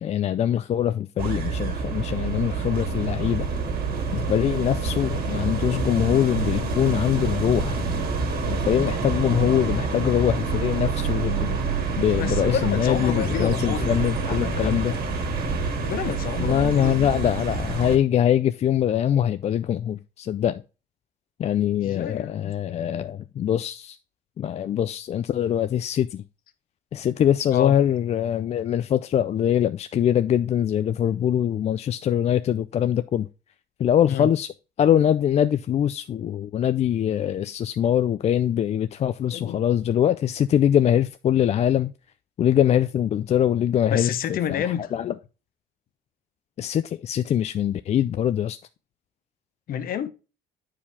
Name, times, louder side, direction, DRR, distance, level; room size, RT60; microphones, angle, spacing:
voice 1, 0.0-3.5 4.1-7.8 8.5-11.6 12.0-14.9 16.4-20.6 21.4-24.0 24.4-26.2 26.9-33.3 33.8-34.5 34.8-41.9 42.4-45.1 46.6-48.6, left 10 dB, 40° left, 0.4 m, -23 dB
sound 1, 1.2-18.0, right 4 dB, 60° right, 2.2 m, -27 dB
sound 2, 2.7-8.6, left 8 dB, 85° left, 1.6 m, -38 dB
voice 2, 12.1-14.9 15.8-17.3 21.8-22.5 27.5-27.8 34.1-34.3 39.3-39.6 43.9-44.9 49.7-50.1, left 9 dB, 60° left, 0.9 m, -29 dB
8.5 x 4.8 x 3.5 m
cardioid pair, 110°, 17 cm